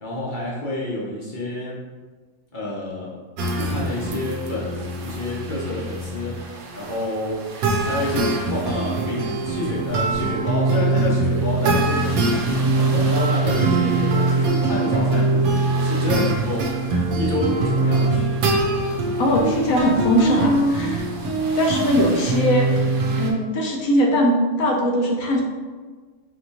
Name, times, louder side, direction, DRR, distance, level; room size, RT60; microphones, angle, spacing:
voice 1, 0.0-1.8 2.5-3.2 3.5-6.5 6.7-7.5 7.8-12.3 12.8-15.5 15.8-16.8 17.1-18.4, left 2 dB, 40° left, -5 dB, 0.8 m, -28 dB
sound 1, 3.4-23.3, right 2 dB, 70° right, 1.1 m, -22 dB
voice 2, 19.2-21.0 21.6-22.7 23.1-25.4, equal, 65° left, 0 dB, 0.9 m, -20 dB
4.1 x 3.0 x 2.8 m, 1.4 s
omnidirectional pair, 1.7 m